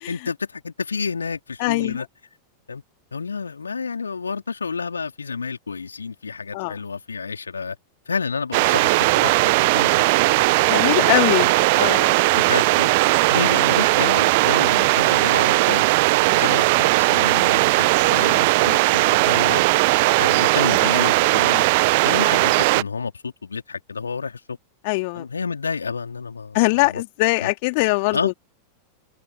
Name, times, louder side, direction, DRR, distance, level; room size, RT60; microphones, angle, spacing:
voice 1, 0.1-2.1 2.7-2.8 3.1-7.8 8.1-10.3 10.6-11.5 11.8-11.9 12.3-12.9 13.3-15.9 16.4-19.6 20.2-21.7 22.0-24.6 25.1-27.0 27.4-27.5 28.1-28.3, left 5 dB, 75° left, 4.0 m, -30 dB
voice 2, 1.6-2.0 6.5-6.7 10.6-11.5 11.7-12.1 16.3-16.4 24.8-25.3 26.5-28.3, left 27 dB, 50° left, 3.3 m, -22 dB
sound 1, 8.5-22.8, right 24 dB, 50° right, 1.0 m, -18 dB
figure-of-eight pair, 90°, 0 cm